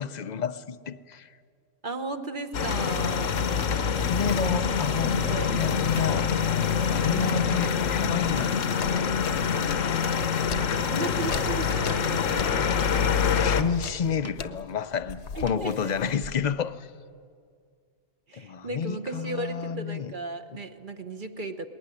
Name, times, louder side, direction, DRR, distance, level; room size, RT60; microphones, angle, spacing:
voice 1, 0.0-1.3 3.9-8.6 8.9-9.2 13.1-16.9 18.3-20.1, left 6 dB, 45° left, 0.6 m, -31 dB
voice 2, 1.8-3.4 4.2-4.6 5.2-5.6 10.5-12.8 13.8-13.9 15.4-15.9 18.3-21.7, right 3 dB, 40° right, 1.2 m, -36 dB
sound 1, 2.5-13.6, left 6 dB, 85° left, 1.4 m, -25 dB
sound 2, 3.6-3.8 4.8-5.1 5.7-6.1 6.6-6.7 7.2-7.4 8.1-8.7 9.2-9.7 10.7-10.9 11.9-12.1 13.0-13.2 14.2-14.4 15.5-15.6, right 3 dB, 15° right, 0.8 m, -44 dB
sound 3, 3.9-6.9 7.6-9.9 10.4-16.6, left 6 dB, 65° left, 1.1 m, -41 dB
20.0 x 18.5 x 10.0 m
omnidirectional pair, 1.3 m